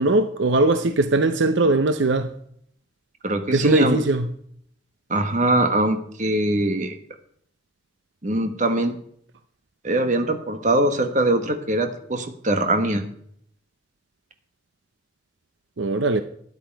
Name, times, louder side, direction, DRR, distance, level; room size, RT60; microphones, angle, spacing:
voice 1, 0.0-2.3 3.5-4.3 15.8-16.2, right 2 dB, 70° right, 0.7 m, -20 dB
voice 2, 3.2-4.0 5.1-7.0 8.2-9.0 9.8-13.0, right 1 dB, 40° right, 1.4 m, -22 dB
13.0 x 9.9 x 4.6 m
head